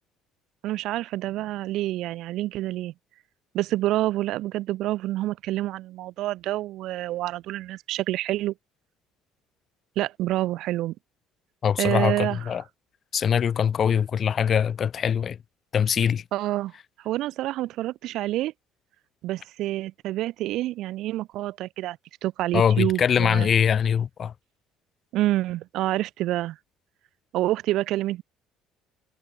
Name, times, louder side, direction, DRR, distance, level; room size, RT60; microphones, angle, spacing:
voice 1, 0.6-2.9 3.5-8.5 10.0-10.9 11.8-12.5 16.3-16.7 17.0-18.5 19.2-23.5 25.1-26.6 27.3-28.2, right 15 dB, 70° right, 1.8 m, -27 dB
voice 2, 11.6-12.6 13.1-15.4 15.7-16.2 22.5-24.3, left 8 dB, 45° left, 0.8 m, -22 dB
supercardioid pair, 85°, 0 cm